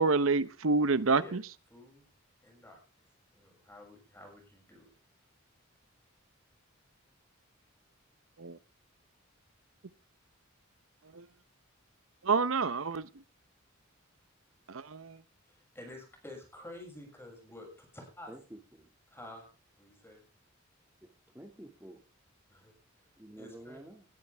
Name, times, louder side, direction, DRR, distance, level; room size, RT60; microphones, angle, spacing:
voice 1, 0.0-1.4 8.4-8.6 11.1-11.2 12.2-13.1 14.7-15.2, right 4 dB, 70° right, 0.8 m, -28 dB
voice 2, 1.7-2.0 2.4-2.8 3.3-4.9 15.4-18.3 19.1-19.5 19.8-20.2 22.5-23.1 23.4-23.8, left 1 dB, 10° left, 6.8 m, -50 dB
voice 3, 18.3-18.9 21.3-22.0 23.2-24.0, right 1 dB, 10° right, 2.2 m, -49 dB
19.5 x 13.0 x 3.5 m
head